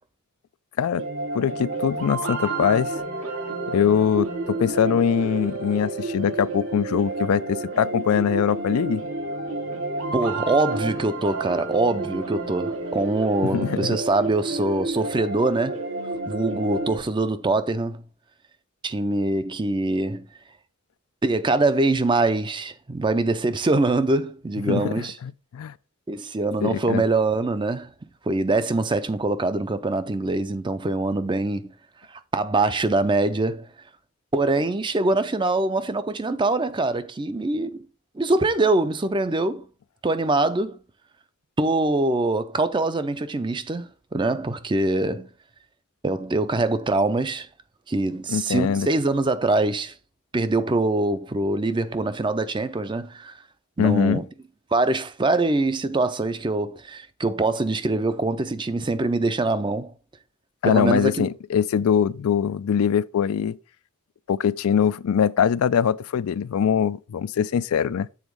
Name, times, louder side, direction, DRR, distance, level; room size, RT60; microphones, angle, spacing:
sound 1, 1.0-17.0, right 2 dB, 85° right, 2.1 m, -30 dB
voice 1, 1.3-2.9 3.7-9.0 13.4-14.0 24.7-25.7 26.6-27.0 48.3-48.9 53.8-54.2 60.6-63.6 64.3-68.1, left 7 dB, 90° left, 0.4 m, -22 dB
voice 2, 10.1-15.8 16.3-18.0 18.8-20.3 21.2-25.2 26.1-27.9 28.3-31.7 32.1-33.7 34.3-37.8 38.2-39.6 40.0-40.8 41.6-45.3 46.0-47.5 47.9-49.9 50.3-53.3 53.8-54.3 54.7-59.9 60.7-61.3, right 2 dB, 20° right, 0.4 m, -23 dB
7.2 x 4.0 x 4.7 m
head